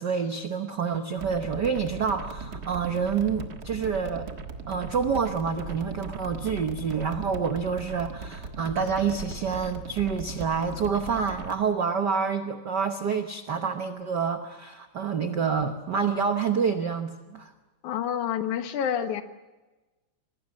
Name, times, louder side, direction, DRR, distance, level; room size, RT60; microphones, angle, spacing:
voice 1, 0.0-4.3 4.7-17.5, right 6 dB, 70° right, 7 dB, 1.0 m, -28 dB
sound 1, 1.2-11.5, right 4 dB, 40° right, 1.6 m, -39 dB
voice 2, 17.8-19.2, left 9 dB, 75° left, 9 dB, 2.7 m, -28 dB
26.0 x 20.0 x 7.4 m, 1.2 s
omnidirectional pair, 3.5 m